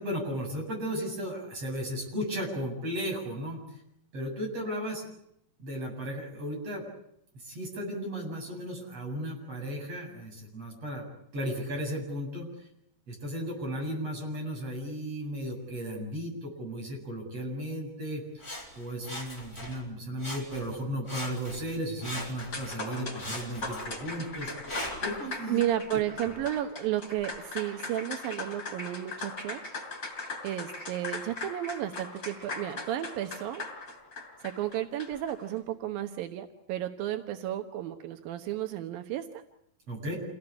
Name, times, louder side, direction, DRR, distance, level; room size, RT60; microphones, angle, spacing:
voice 1, 0.0-3.6 4.1-5.1 5.6-6.9 7.3-11.1 11.3-12.7 13.1-18.2 18.8-24.5 25.0-25.6 39.9-40.2, equal, 45° right, 0 dB, 8.9 m, -35 dB
Sawing, 18.4-19.9 20.2-20.8 21.1-22.8 23.2-25.2 25.8-25.9, left 1 dB, 5° left, 6.1 m, -41 dB
sound 1, 22.4-35.4, left 3 dB, 30° left, 6.2 m, -39 dB
voice 2, 25.5-29.6 30.4-33.6 34.4-39.4, right 12 dB, 85° right, 6 dB, 3.0 m, -33 dB
28.5 x 18.0 x 9.8 m, 0.76 s
omnidirectional pair, 4.0 m